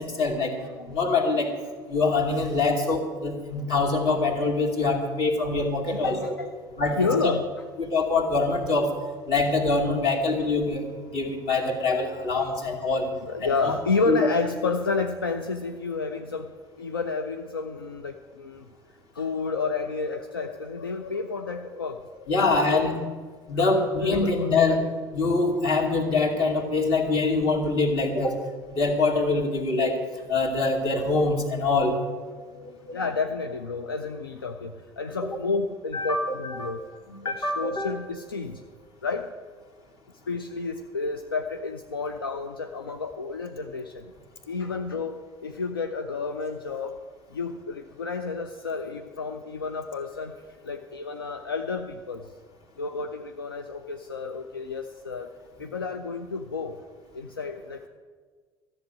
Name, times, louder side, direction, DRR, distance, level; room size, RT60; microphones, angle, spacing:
voice 1, 0.0-0.5 0.9-1.6 1.9-6.2 6.8-7.3 7.8-8.9 9.3-13.1 13.4-13.7 14.1-14.2 22.3-22.9 23.5-24.8 25.1-28.4 28.7-30.0 30.3-32.0 32.6-32.7 35.9-37.9, left 3 dB, 50° left, 1 dB, 2.3 m, -24 dB
voice 2, 0.6-1.0 5.9-6.5 6.8-7.5 11.6-12.4 12.7-12.9 13.1-18.6 19.1-22.9 23.5-24.9 32.3-36.8 37.2-38.6 39.0-39.3 40.3-44.0 44.5-47.0 47.3-52.3 52.8-55.3 55.6-56.8 57.1-57.9, left 4 dB, 80° left, 7 dB, 0.5 m, -31 dB
13.5 x 7.3 x 8.9 m, 1.5 s
figure-of-eight pair, 60°, 12 cm